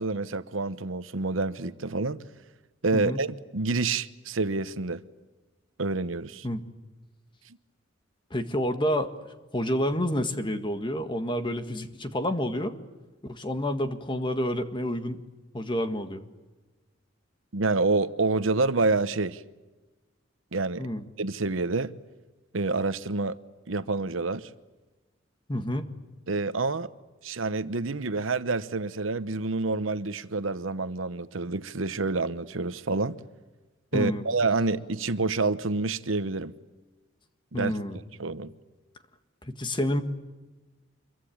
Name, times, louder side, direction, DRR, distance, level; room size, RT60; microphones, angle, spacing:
voice 1, 0.0-2.2 2.8-5.0 5.8-6.5 17.5-19.4 20.5-20.9 21.2-21.9 22.5-23.4 23.7-24.5 26.3-26.9 27.2-33.2 33.9-36.5 37.5-37.7 38.2-38.5, right 3 dB, 75° right, 1.0 m, -28 dB
voice 2, 2.9-3.2 6.4-6.6 8.3-9.1 9.5-12.7 13.2-15.2 15.5-16.2 20.8-21.0 25.5-25.9 33.9-34.2 37.5-38.0 39.4-40.0, equal, 25° left, 1.7 m, -29 dB
26.5 x 23.0 x 8.7 m
head